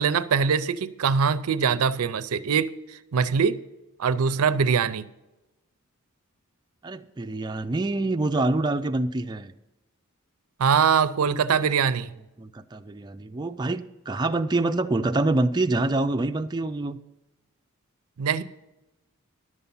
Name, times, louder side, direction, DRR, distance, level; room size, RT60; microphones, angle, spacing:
voice 1, 0.0-2.7 3.1-3.6 4.0-5.1 10.6-12.1 18.2-18.4, right 6 dB, 90° right, 15 dB, 0.5 m, -22 dB
voice 2, 6.8-9.5 12.4-17.0, right 2 dB, 20° right, 6 dB, 0.4 m, -26 dB
11.0 x 7.0 x 5.5 m, 0.97 s
head